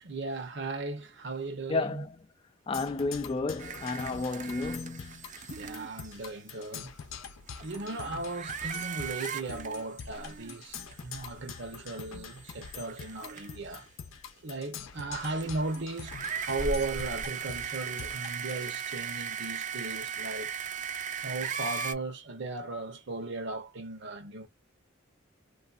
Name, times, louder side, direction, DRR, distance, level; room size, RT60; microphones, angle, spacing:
voice 1, 0.0-2.0 5.6-6.9 7.6-13.8 14.4-16.1 16.4-20.5 21.2-24.5, right 3 dB, 60° right, 0.8 m, -36 dB
voice 2, 1.7-2.2 2.7-5.3, left 3 dB, 25° left, 0.3 m, -32 dB
Percussion, 2.7-18.7, left 6 dB, 85° left, 0.6 m, -45 dB
sound 1, 3.6-6.2 7.1-7.2 7.5-10.9 11.3-11.4 12.1-13.7 15.2-21.9, right 6 dB, 40° right, 0.5 m, -38 dB
3.2 x 2.5 x 2.4 m
head